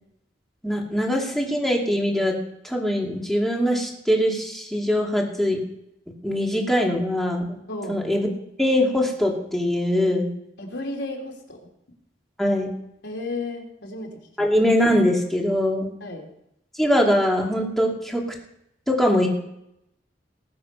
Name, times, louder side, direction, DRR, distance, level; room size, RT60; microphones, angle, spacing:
voice 1, 0.6-2.4 2.6-5.6 6.2-7.6 7.9-8.3 8.6-10.3 12.4-12.7 14.4-15.9 16.8-18.2 18.9-19.3, equal, ahead, -1 dB, 2.7 m, -22 dB
voice 2, 10.6-11.6 13.0-14.1 14.4-14.5 16.0-16.3, left 2 dB, 80° left, 1 dB, 3.7 m, -33 dB
19.5 x 7.5 x 5.6 m, 0.80 s
head